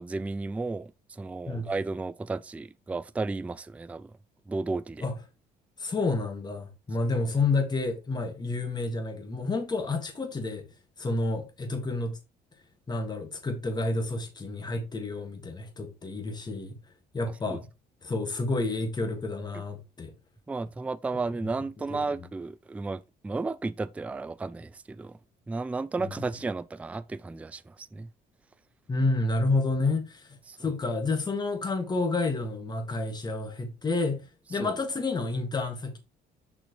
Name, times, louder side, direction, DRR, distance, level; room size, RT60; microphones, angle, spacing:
voice 1, 0.0-4.1 4.5-5.0 17.5-17.6 19.5-19.6 20.5-25.2 25.5-28.1 30.5-30.6 34.6-34.7, right 3 dB, 10° right, 0.3 m, -33 dB
voice 2, 5.8-10.6 11.0-12.2 12.9-16.8 17.1-17.7 18.0-20.1 21.9-22.0 26.0-26.1 28.9-36.0, left 3 dB, 25° left, 1.8 m, -30 dB
6.2 x 6.1 x 3.1 m
cardioid pair, 110°, 17 cm